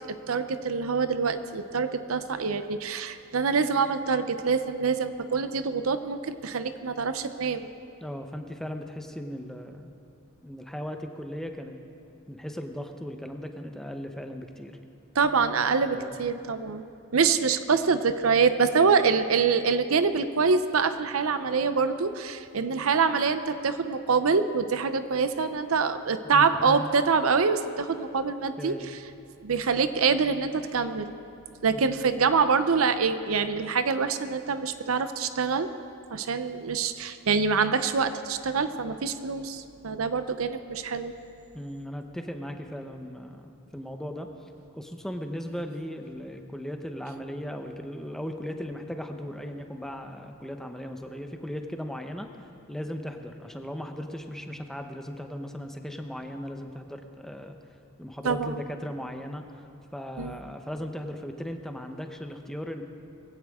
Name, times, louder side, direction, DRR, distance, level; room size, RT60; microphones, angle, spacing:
voice 1, 0.3-7.7 15.2-16.9 17.1-28.7 29.4-31.1 31.6-35.7 36.1-41.1 58.2-58.6 60.2-60.4, right 5 dB, 80° right, 11 dB, 0.7 m, -25 dB
voice 2, 8.0-9.9 10.4-11.8 12.3-14.8 15.8-16.2 26.2-26.9 28.6-28.9 31.7-32.0 41.5-44.3 44.7-52.3 52.7-57.6 58.0-59.7 59.9-62.8, equal, ahead, 5 dB, 0.8 m, -37 dB
20.5 x 16.0 x 3.6 m, 2.6 s
head